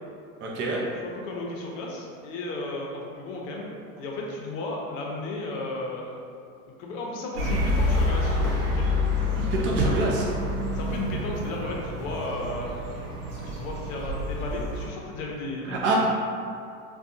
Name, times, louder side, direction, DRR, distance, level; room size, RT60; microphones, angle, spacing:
voice 1, 0.4-0.8 9.3-10.3 15.6-15.9, right 3 dB, 25° right, -3 dB, 0.5 m, -27 dB
voice 2, 1.0-3.7 4.0-6.3 6.8-8.4 8.7-8.9 9.8-10.1 10.7-12.7 13.4-15.8, left 2 dB, 60° left, -2 dB, 0.7 m, -34 dB
sound 1, 7.3-14.9, left 1 dB, 85° right, 0.9 m, -27 dB
2.6 x 2.3 x 2.5 m, 2.4 s
hypercardioid pair, 100°, 45 cm